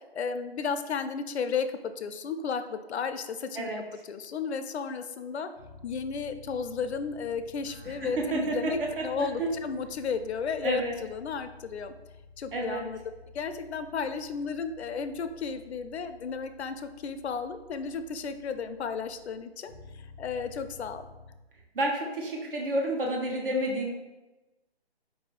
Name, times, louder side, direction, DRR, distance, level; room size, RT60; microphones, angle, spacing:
voice 1, 0.1-3.7 4.1-5.5 5.8-11.9 12.4-13.0 13.3-21.0, left 5 dB, 80° left, 9 dB, 0.5 m, -33 dB
sound 1, 5.5-21.3, left 3 dB, ahead, 0.6 m, -51 dB
voice 2, 7.8-9.5 10.6-10.9 12.5-12.8 21.7-23.9, right 1 dB, 55° right, -1 dB, 1.2 m, -30 dB
4.7 x 2.8 x 4.0 m, 1.1 s
hypercardioid pair, 165°, 32 cm